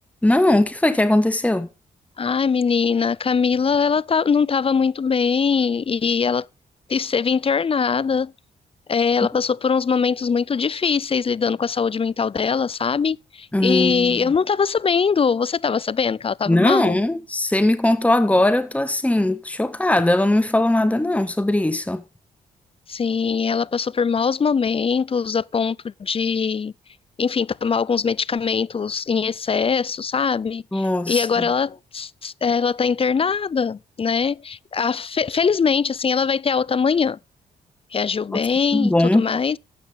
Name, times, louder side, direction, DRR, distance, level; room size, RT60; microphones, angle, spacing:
voice 1, 0.2-1.7 13.5-14.2 16.5-22.0 30.7-31.3 38.7-39.3, left 1 dB, 5° left, 1.3 m, -19 dB
voice 2, 2.2-6.5 6.9-8.3 8.9-17.0 20.8-20.9 22.9-26.7 27.2-37.2 37.9-39.6, left 6 dB, 30° left, 0.4 m, -22 dB
13.0 x 8.6 x 3.6 m
hypercardioid pair, 45°, 19 cm